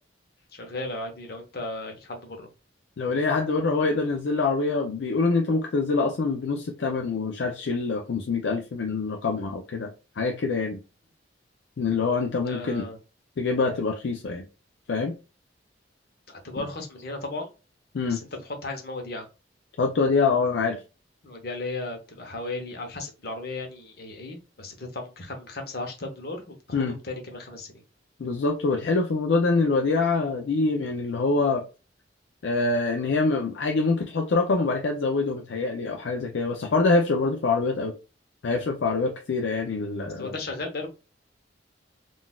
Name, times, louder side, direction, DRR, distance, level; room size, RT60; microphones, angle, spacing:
voice 1, 0.5-2.5 12.5-13.0 16.3-17.5 18.1-19.3 21.2-27.8 40.2-40.9, left 2 dB, 55° left, 0.8 m, -35 dB
voice 2, 3.0-10.8 11.8-12.9 13.4-14.4 14.9-15.2 17.9-18.2 19.8-20.8 26.7-27.0 28.2-31.6 32.4-37.9 38.4-40.3, left 3 dB, 70° left, 0.4 m, -25 dB
3.8 x 2.4 x 2.2 m
head